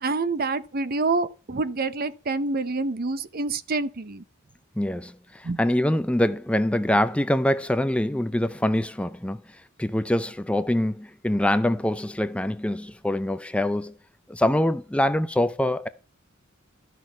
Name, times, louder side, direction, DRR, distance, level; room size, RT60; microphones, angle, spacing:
voice 1, 0.0-4.2 5.4-5.6, right 3 dB, 45° right, 0.7 m, -27 dB
voice 2, 4.8-9.4 9.8-13.9 14.3-15.9, left 1 dB, 5° left, 0.4 m, -24 dB
12.5 x 6.3 x 4.5 m
head